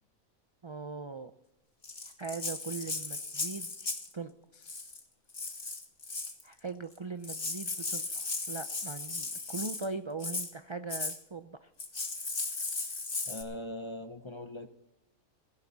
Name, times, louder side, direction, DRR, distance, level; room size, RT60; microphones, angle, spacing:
voice 1, 0.6-1.3 2.2-3.7 4.1-4.9 6.4-11.7, right 4 dB, 40° right, 10 dB, 0.4 m, -40 dB
Rattle (instrument), 1.8-4.1 4.6-5.0 5.3-6.4 6.9-7.0 7.2-9.9 10.2-10.5 10.9-11.2 11.8-13.4, left 3 dB, 40° left, 2.0 m, -36 dB
voice 2, 13.3-14.7, left 1 dB, 25° left, 9 dB, 0.8 m, -41 dB
17.0 x 15.5 x 4.1 m, 0.84 s
omnidirectional pair, 1.4 m